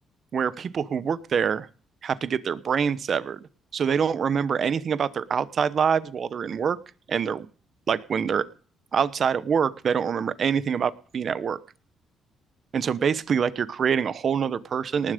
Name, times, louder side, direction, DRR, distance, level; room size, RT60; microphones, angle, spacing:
voice 1, 0.3-1.7 2.0-3.4 3.7-6.8 7.1-7.5 7.9-8.5 8.9-11.6 12.7-15.1, right 7 dB, 55° right, 17 dB, 1.0 m, -25 dB
19.0 x 7.4 x 5.1 m, 0.41 s
cardioid pair, 90°, 0 cm